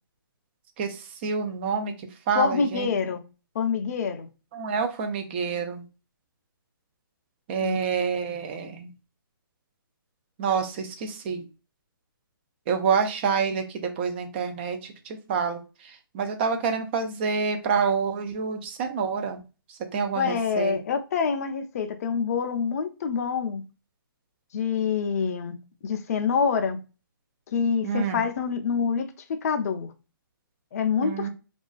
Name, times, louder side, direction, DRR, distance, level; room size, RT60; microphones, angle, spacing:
voice 1, 0.8-2.9 4.5-5.9 7.5-8.9 10.4-11.4 12.7-19.4 19.7-20.8 27.8-28.3 31.0-31.3, right 6 dB, 30° right, 0.4 m, -28 dB
voice 2, 2.4-3.2 3.5-4.3 7.6-7.8 20.2-23.6 24.5-25.5 25.8-26.8 27.5-29.9 30.7-31.3, left 6 dB, 40° left, 0.4 m, -26 dB
2.3 x 2.3 x 2.3 m
hypercardioid pair, 150°, 12 cm